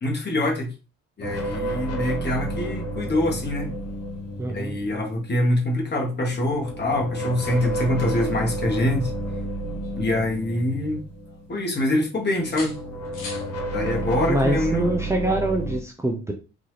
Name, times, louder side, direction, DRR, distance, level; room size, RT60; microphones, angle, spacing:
voice 1, 0.0-0.7 1.2-3.7 4.5-9.1 10.0-11.0 11.5-12.7 13.7-14.9, left 1 dB, 35° left, 1.5 m, -24 dB
sound 1, 1.2-5.4 6.2-12.0 12.3-15.8, right 1 dB, 55° left, 1.2 m, -31 dB
voice 2, 4.4-4.8 14.3-16.3, right 1 dB, 10° right, 0.6 m, -24 dB
sound 2, 9.3-10.8 11.2-12.0 12.4-13.5 15.4-15.6, left 3 dB, 90° left, 1.4 m, -43 dB
3.9 x 2.8 x 3.2 m
cardioid pair, 90°, 30 cm